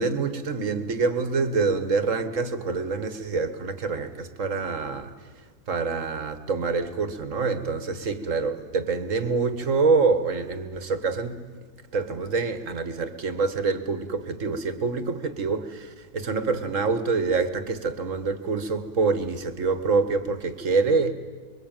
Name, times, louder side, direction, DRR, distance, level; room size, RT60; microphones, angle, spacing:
voice 1, 0.0-5.1 5.7-11.4 11.9-21.1, right 4 dB, 50° right, 11 dB, 1.9 m, -26 dB
26.0 x 23.0 x 9.1 m, 1.6 s
omnidirectional pair, 1.8 m